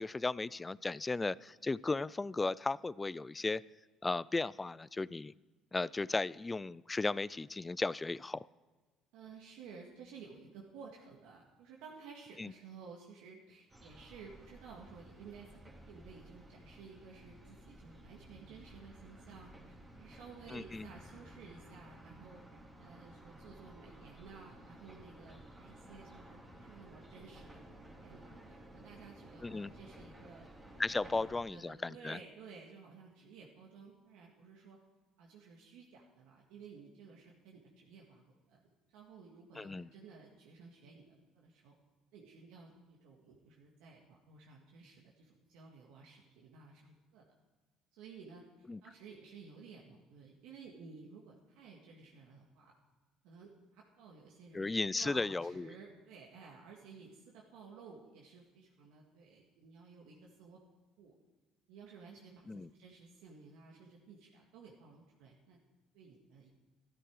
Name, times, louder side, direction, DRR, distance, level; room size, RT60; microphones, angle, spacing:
voice 1, 0.0-3.6 4.0-5.3 5.7-8.5 12.4-12.5 20.5-20.9 29.4-29.7 30.8-32.2 39.6-39.9 48.7-48.8 54.5-55.7 62.5-62.7, left 3 dB, 15° left, 21 dB, 0.3 m, -35 dB
voice 2, 9.1-22.4 22.8-27.6 28.0-30.5 30.9-34.8 35.2-38.6 38.9-41.1 41.3-41.7 42.1-47.3 47.9-52.7 53.2-60.6 61.0-61.2 61.7-65.6 65.9-66.5, right 5 dB, 85° right, -2 dB, 1.8 m, -54 dB
sound 1, 13.7-31.3, right 1 dB, 15° right, 2.8 m, -55 dB
13.0 x 12.5 x 4.7 m, 1.3 s
cardioid pair, 110°, 0 cm